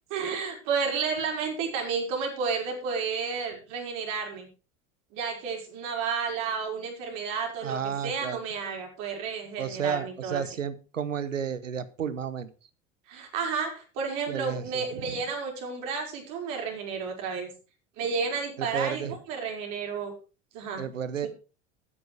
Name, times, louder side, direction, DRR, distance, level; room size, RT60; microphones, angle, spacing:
voice 1, 0.1-4.5 5.1-10.4 13.1-17.5 18.0-20.1 20.5-20.8, right 5 dB, 55° right, 1 dB, 5.5 m, -31 dB
voice 2, 7.6-8.4 9.6-12.5 14.3-15.2 18.6-19.2 20.8-21.3, right 7 dB, 85° right, 15 dB, 1.2 m, -32 dB
12.5 x 9.9 x 4.8 m, 0.33 s
figure-of-eight pair, 75°, 37 cm